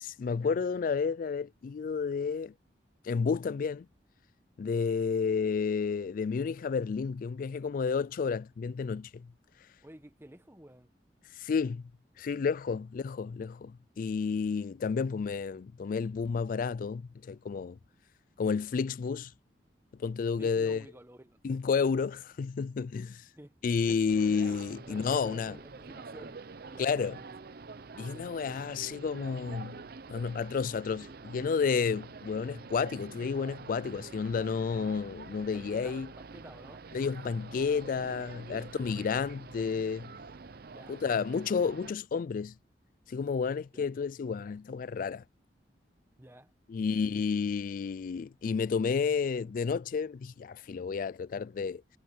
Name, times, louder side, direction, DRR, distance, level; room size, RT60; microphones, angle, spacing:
voice 1, 0.0-2.5 3.0-3.9 4.6-9.3 11.4-11.8 12.2-17.8 18.4-19.3 19.9-20.8 21.4-23.3 23.6-25.6 26.8-27.2 28.0-29.8 30.1-36.1 36.9-40.1 40.9-42.5 43.1-45.2 46.7-51.8, left 5 dB, 50° left, 0.3 m, -31 dB
voice 2, 9.8-10.9 20.4-21.6 23.4-23.5 23.9-24.0 24.9-26.4 26.7-27.3 35.5-36.9 38.5-38.7 40.7-41.3 43.7-43.9 46.2-46.5 46.9-47.0, right 1 dB, 15° right, 1.3 m, -51 dB
sound 1, 24.1-41.9, right 4 dB, 60° right, 0.7 m, -47 dB
head